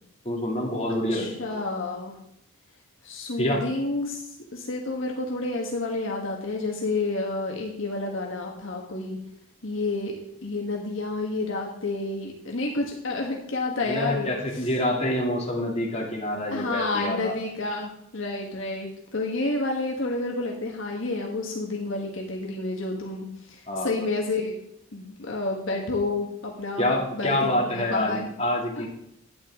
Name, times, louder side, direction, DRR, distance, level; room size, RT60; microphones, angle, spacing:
voice 1, 0.2-1.6 3.4-3.6 13.9-17.3 23.7-23.9 26.8-28.9, left 1 dB, 30° left, -2 dB, 2.5 m, -27 dB
voice 2, 0.9-2.2 3.0-9.2 9.6-10.1 10.4-14.7 16.5-24.6 24.9-28.3 28.8-28.9, left 2 dB, 60° left, 0 dB, 1.4 m, -30 dB
12.0 x 8.9 x 3.7 m, 0.75 s
head